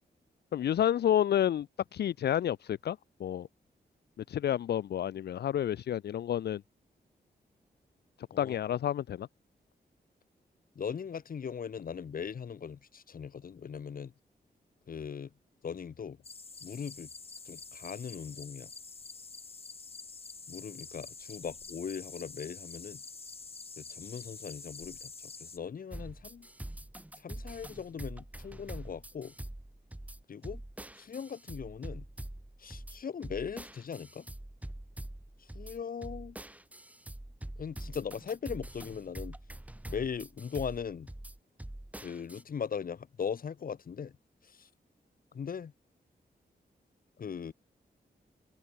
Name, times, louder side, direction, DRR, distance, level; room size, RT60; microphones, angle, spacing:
voice 1, 0.5-1.7 1.9-3.5 4.2-6.6 8.4-9.3, left 10 dB, 75° left, 0.5 m, -30 dB
voice 2, 10.8-14.1 14.9-15.3 15.6-16.2 16.6-17.1 17.5-18.7 20.5-23.0 23.8-25.1 25.4-26.5 27.2-29.3 30.3-30.6 30.9-32.1 32.6-34.3 35.4-36.4 37.6-39.4 39.8-41.1 42.0-44.1 44.4-44.7 45.3-45.7 47.2-47.5, left 7 dB, 60° left, 2.1 m, -39 dB
sound 1, 16.2-25.6, left 4 dB, 35° left, 6.0 m, -47 dB
sound 2, 25.9-42.4, right 1 dB, 10° right, 5.1 m, -45 dB
wide cardioid pair, 165°, 17 cm